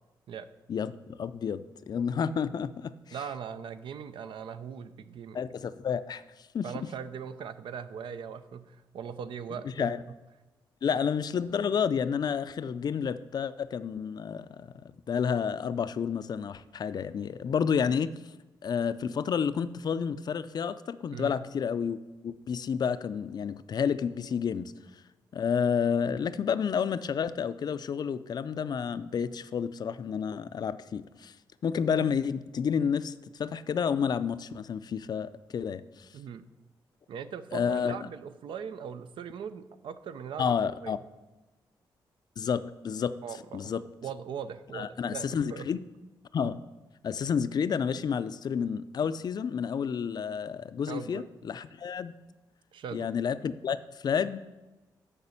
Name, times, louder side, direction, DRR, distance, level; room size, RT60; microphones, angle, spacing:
voice 1, 0.7-3.2 5.3-6.2 6.5-6.9 9.6-10.0 10.8-18.1 18.6-22.0 22.2-24.7 25.3-31.3 31.6-33.1 33.4-36.1 37.5-38.1 40.4-41.0 42.4-43.1 43.5-43.8 44.7-45.8 46.3-46.6 47.0-52.1 52.9-54.4, left 7 dB, 50° left, 14 dB, 0.4 m, -30 dB
voice 2, 3.1-5.4 6.6-9.9 10.9-11.0 21.1-21.4 36.1-36.4 37.1-40.5 40.8-41.0 43.2-43.7 44.0-45.7 50.9-51.3 52.7-53.1, right 7 dB, 75° right, 12 dB, 0.5 m, -40 dB
6.7 x 5.2 x 7.1 m, 1.1 s
cardioid pair, 85°, 9 cm